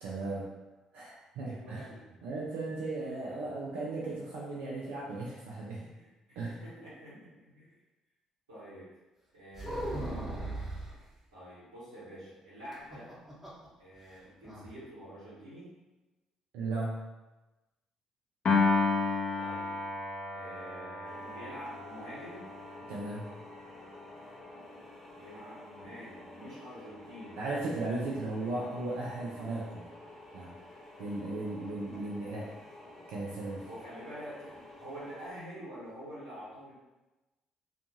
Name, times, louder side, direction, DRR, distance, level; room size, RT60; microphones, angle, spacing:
voice 1, 0.0-0.5 0.9-1.9 2.2-5.9 6.4-6.6 16.5-17.1 22.9-23.3 27.4-29.9 30.3-30.6 31.0-32.5 33.1-33.7, right 2 dB, 70° right, -5 dB, 0.4 m, -36 dB
voice 2, 1.4-2.0 3.0-3.5 5.9-7.7 8.5-8.9 9.3-10.3 11.3-13.1 13.8-15.7 19.4-19.8 20.3-22.4 25.2-27.4 28.2-28.5 33.7-36.7, equal, 90° right, -12 dB, 1.0 m, -47 dB
sound 1, 9.5-11.0 12.7-13.7 14.0-14.1 14.4-14.7, right 1 dB, 10° right, 1.0 m, -37 dB
Piano, 18.5-24.8, left 4 dB, 45° left, 0.6 m, -33 dB
sound 2, 21.0-35.4, left 1 dB, 10° left, 1.1 m, -51 dB
2.6 x 2.3 x 2.7 m, 1.1 s
hypercardioid pair, 50°, 2 cm